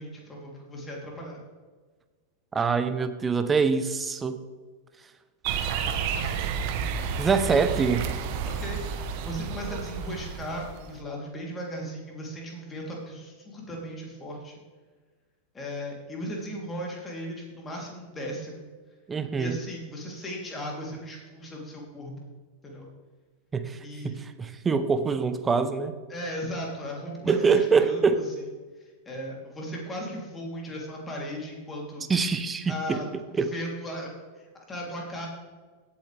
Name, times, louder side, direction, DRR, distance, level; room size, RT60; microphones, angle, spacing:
voice 1, 0.0-1.4 8.4-14.5 15.5-18.7 19.4-22.1 22.6-22.9 23.8-24.1 26.1-28.5 28.8-32.1 32.7-35.3, equal, 15° left, -2 dB, 3.2 m, -37 dB
voice 2, 2.5-4.4 7.2-8.1 19.1-19.6 23.5-23.8 24.0-25.9 27.2-28.2 32.1-33.0 33.3-33.5, right 5 dB, 15° right, 10 dB, 0.9 m, -24 dB
sound 1, 5.4-11.0, right 7 dB, 45° right, 1.1 m, -31 dB
16.5 x 8.7 x 3.4 m, 1.4 s
figure-of-eight pair, 90°, 0 cm